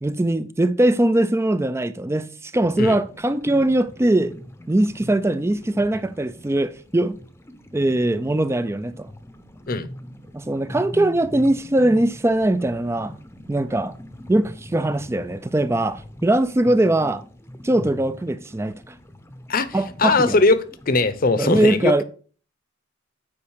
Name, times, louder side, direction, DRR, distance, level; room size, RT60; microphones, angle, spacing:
voice 1, 0.0-4.4 4.7-7.2 7.7-9.1 10.3-13.1 13.5-13.9 14.3-17.2 17.6-18.7 19.7-20.4 21.4-22.0, right 1 dB, 15° right, 0.4 m, -21 dB
sound 1, 2.6-21.5, equal, 10° left, 0.7 m, -42 dB
voice 2, 19.5-21.9, left 3 dB, 45° left, 0.8 m, -20 dB
8.7 x 5.1 x 6.4 m
head